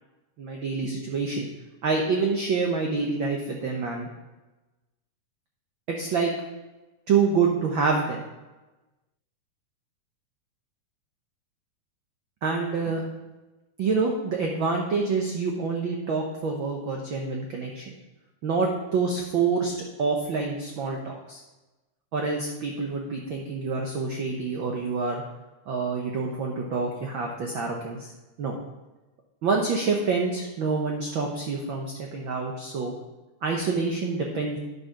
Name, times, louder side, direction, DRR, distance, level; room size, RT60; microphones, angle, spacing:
voice 1, 0.4-1.5 1.8-4.1 5.9-6.3 7.1-8.2 12.4-13.0 13.8-17.9 18.4-19.7 20.0-21.4 22.1-25.2 25.7-28.1 28.4-28.6 29.4-32.9 33.4-34.6, right 4 dB, 80° right, 0 dB, 1.1 m, -27 dB
9.7 x 5.5 x 5.6 m, 1.1 s
omnidirectional pair, 3.5 m